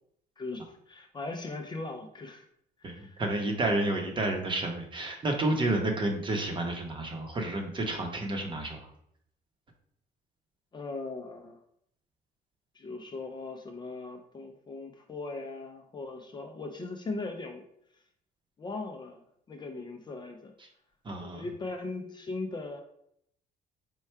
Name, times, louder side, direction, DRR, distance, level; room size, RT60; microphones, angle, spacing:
voice 1, 0.4-2.4 2.8-3.2 10.7-11.6 12.7-17.6 17.9-18.0 18.6-19.2 19.5-20.5 21.2-22.8, left 3 dB, 25° left, 4 dB, 0.5 m, -39 dB
voice 2, 2.8-8.8 21.0-21.4, right 2 dB, 30° right, 2 dB, 0.9 m, -30 dB
4.5 x 2.3 x 4.4 m, 0.71 s
cardioid pair, 110°, 17 cm